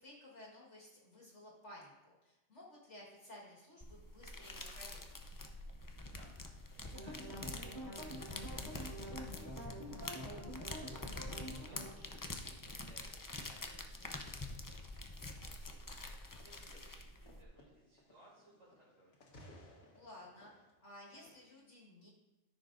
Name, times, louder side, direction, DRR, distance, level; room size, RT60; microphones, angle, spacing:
voice 1, 0.0-5.0 11.7-11.9 19.9-22.1, left 1 dB, 60° left, -4 dB, 1.9 m, -56 dB
sound 1, 3.8-17.4, left 2 dB, 30° left, 0.4 m, -46 dB
voice 2, 6.7-10.9 11.3-19.2, right 1 dB, 75° right, -7 dB, 3.5 m, -65 dB
sound 2, 6.9-11.9, equal, 55° right, 2.0 m, -47 dB
sound 3, 16.4-16.7 17.3-18.9 19.1-21.4, left 1 dB, 80° left, 1.9 m, -60 dB
13.5 x 6.7 x 2.6 m, 1.0 s
omnidirectional pair, 1.4 m